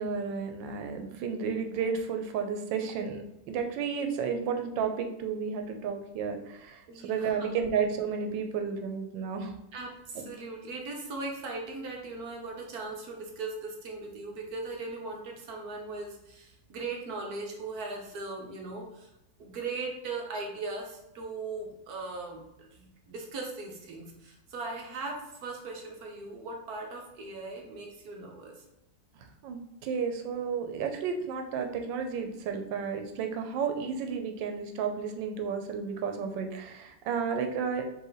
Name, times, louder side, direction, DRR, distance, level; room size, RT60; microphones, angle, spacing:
voice 1, 0.0-9.6 10.1-10.2 29.2-37.8, right 6 dB, 85° right, 5 dB, 1.3 m, -32 dB
voice 2, 6.9-7.5 9.7-19.1 19.4-28.6, right 3 dB, 65° right, 1 dB, 1.2 m, -39 dB
4.4 x 2.6 x 3.9 m, 0.92 s
omnidirectional pair, 1.9 m